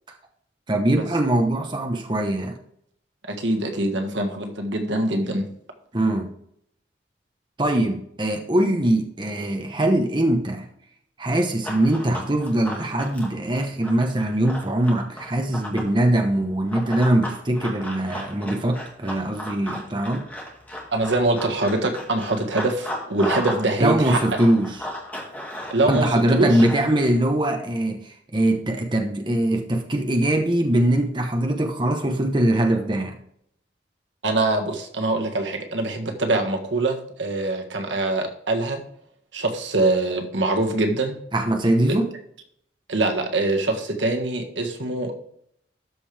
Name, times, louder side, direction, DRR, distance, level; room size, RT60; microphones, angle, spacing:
voice 1, 0.7-2.6 5.9-6.3 7.6-10.6 11.2-20.2 23.8-24.8 25.9-33.2 41.3-42.1, right 1 dB, 25° right, 4 dB, 0.8 m, -22 dB
voice 2, 3.3-5.5 20.9-24.2 25.7-26.5 34.2-38.8 39.3-41.1 41.9-42.0 42.9-45.2, right 2 dB, 85° right, 3 dB, 1.5 m, -24 dB
Run, 11.6-15.9 16.7-23.7 23.9-27.1, left 1 dB, 10° left, 2.0 m, -34 dB
12.5 x 5.3 x 3.3 m, 0.69 s
head